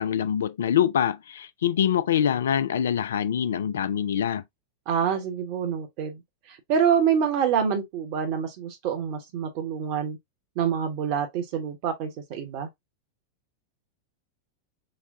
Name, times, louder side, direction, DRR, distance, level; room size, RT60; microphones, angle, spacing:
voice 1, 0.0-4.4, left 9 dB, 65° left, 0.3 m, -24 dB
voice 2, 4.9-6.2 6.5-10.2 10.6-12.7, right 7 dB, 45° right, 1.0 m, -26 dB
4.1 x 2.2 x 2.6 m
figure-of-eight pair, 90°, 0 cm